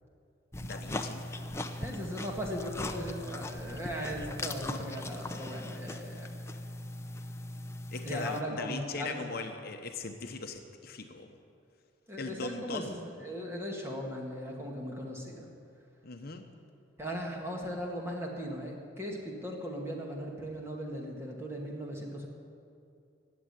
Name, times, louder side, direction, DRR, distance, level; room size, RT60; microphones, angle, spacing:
sound 1, 0.5-8.4, left 1 dB, 15° left, 0.6 m, -39 dB
voice 1, 0.6-1.2 7.9-11.4 12.2-13.0 16.0-16.4, left 3 dB, 50° left, 5 dB, 0.9 m, -39 dB
voice 2, 1.8-6.4 8.0-9.4 12.1-15.5 17.0-22.3, equal, 15° right, -1 dB, 2.1 m, -38 dB
17.5 x 7.6 x 9.7 m, 2.6 s
head